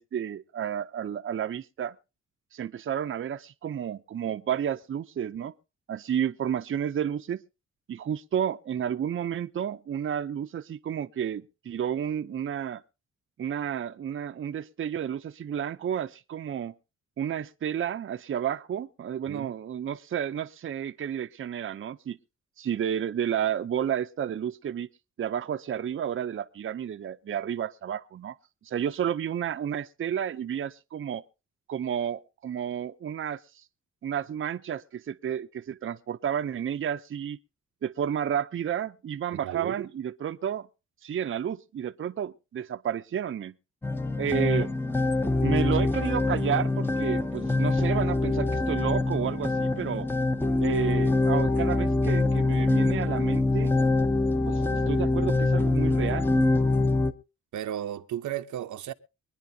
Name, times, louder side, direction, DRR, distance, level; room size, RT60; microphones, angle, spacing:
voice 1, 0.0-1.9 2.5-5.5 5.9-7.4 7.9-12.8 13.4-16.7 17.2-22.2 22.6-24.9 25.2-28.4 28.6-31.2 31.7-33.6 34.0-37.4 37.8-40.7 41.0-43.5 44.2-44.7 45.4-50.1 50.6-53.8 54.4-56.3, right 9 dB, 45° right, 0.6 m, -31 dB
voice 2, 39.3-39.9 57.5-58.9, right 11 dB, 85° right, 0.8 m, -34 dB
sound 1, 43.8-57.1, left 2 dB, 5° left, 0.7 m, -24 dB
24.0 x 10.0 x 2.7 m
wide cardioid pair, 135°, 29 cm